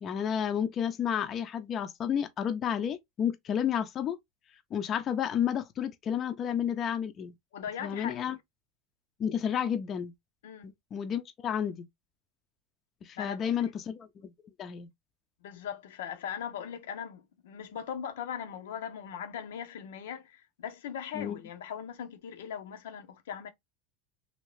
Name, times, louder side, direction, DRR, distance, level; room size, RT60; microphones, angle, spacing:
voice 1, 0.0-4.2 4.7-7.3 7.8-8.4 9.2-10.1 10.6-11.9 13.0-14.3 14.6-14.9 21.1-21.4, left 8 dB, 35° left, 0.5 m, -31 dB
voice 2, 7.5-8.4 10.4-10.7 13.2-13.7 15.4-23.5, left 8 dB, 90° left, 0.7 m, -40 dB
2.9 x 2.7 x 3.1 m
supercardioid pair, 125°, 0 cm